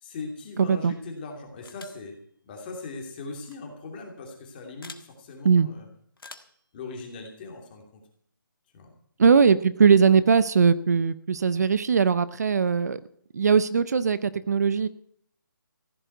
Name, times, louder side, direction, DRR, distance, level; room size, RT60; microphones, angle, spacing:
voice 1, 0.0-2.1 2.4-5.9 6.7-8.0 8.7-8.9, left 3 dB, 25° left, 2 dB, 2.8 m, -39 dB
voice 2, 0.6-0.9 5.4-5.7 9.2-13.0 13.3-14.9, right 6 dB, 50° right, 16 dB, 0.6 m, -20 dB
sound 1, 1.6-2.1 3.4-3.6 4.8-5.1 6.2-6.6, left 3 dB, 90° left, 1.7 m, -45 dB
15.0 x 7.6 x 9.3 m, 0.65 s
hypercardioid pair, 165°, 11 cm